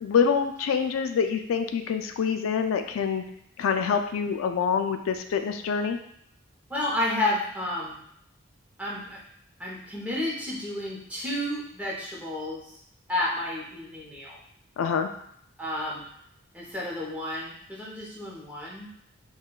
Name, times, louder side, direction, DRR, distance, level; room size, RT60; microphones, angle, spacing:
voice 1, 0.0-3.2 3.6-6.0 14.8-15.1, left 6 dB, 75° left, 7 dB, 0.3 m, -26 dB
voice 2, 6.7-8.0 8.8-9.2 9.6-12.8 13.1-14.4 15.6-16.0 16.5-18.9, left 1 dB, 5° right, -5 dB, 0.7 m, -31 dB
5.4 x 2.2 x 2.3 m, 0.73 s
head